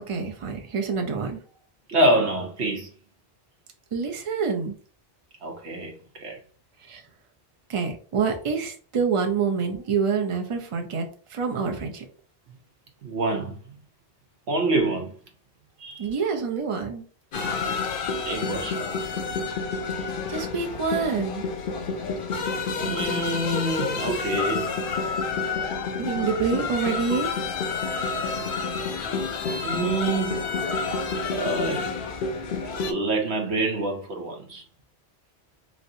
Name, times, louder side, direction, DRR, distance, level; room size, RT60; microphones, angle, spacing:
voice 1, 0.1-1.4 3.9-4.8 6.9-7.0 7.7-11.0 11.3-12.0 16.0-17.0 20.3-21.4 26.0-27.3, right 5 dB, 40° right, 0.5 m, -26 dB
voice 2, 1.9-2.9 5.4-6.4 13.0-13.8 14.5-15.1 15.8-16.1 18.3-18.9 22.8-24.7 29.6-30.5 31.3-31.9 32.8-34.6, right 2 dB, 85° right, 1.1 m, -26 dB
sound 1, 17.3-32.9, left 4 dB, 60° left, 0.7 m, -29 dB
3.1 x 2.7 x 2.7 m
omnidirectional pair, 1.1 m